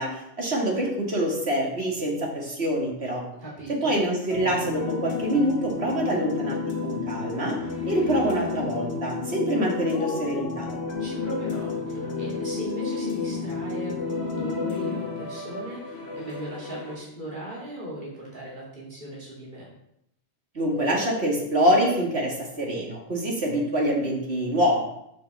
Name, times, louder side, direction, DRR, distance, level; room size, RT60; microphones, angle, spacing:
voice 1, 0.0-3.2 3.7-7.6 7.9-10.7 20.5-24.8, equal, 65° right, -1 dB, 2.5 m, -25 dB
voice 2, 3.4-4.0 11.0-19.7, right 1 dB, 45° right, -5 dB, 2.9 m, -38 dB
sound 1, 4.3-16.9, left 4 dB, 65° left, 1.5 m, -31 dB
7.9 x 5.2 x 6.8 m, 0.79 s
omnidirectional pair, 1.2 m